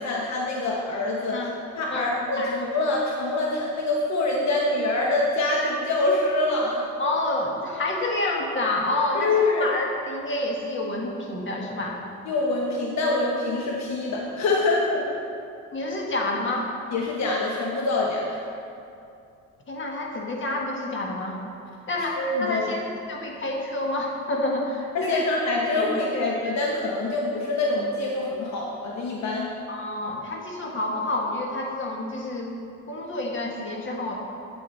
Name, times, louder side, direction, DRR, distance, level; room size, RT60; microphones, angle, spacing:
voice 1, 0.0-6.9 9.1-9.7 12.3-15.1 16.9-18.4 22.2-22.8 24.9-29.5, left 2 dB, 65° left, -2 dB, 1.1 m, -25 dB
voice 2, 1.9-2.6 7.0-12.0 15.7-16.7 19.7-21.4 21.9-25.3 25.7-25.8 26.1-26.2 29.7-32.5 32.9-34.2, left 2 dB, 40° left, -1 dB, 1.6 m, -28 dB
8.5 x 7.6 x 4.2 m, 2.6 s
cardioid pair, 90°, 30 cm